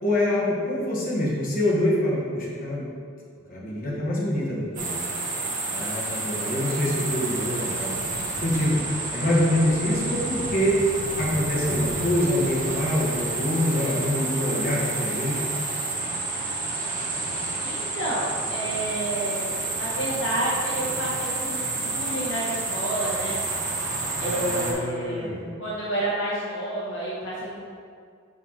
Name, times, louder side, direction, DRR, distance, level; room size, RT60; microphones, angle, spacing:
voice 1, 0.0-2.8 3.5-5.0 5.7-7.9 8.4-8.8 9.1-10.8 11.2-15.4 24.2-25.6, left 1 dB, 40° left, -6 dB, 1.5 m, -25 dB
Sounds of summer aa, 4.8-24.7, right 3 dB, 40° right, 1.1 m, -30 dB
voice 2, 17.6-23.3 24.2-25.3 25.6-27.6, right 1 dB, 60° left, -7 dB, 1.2 m, -30 dB
5.6 x 5.2 x 4.3 m, 2.2 s
head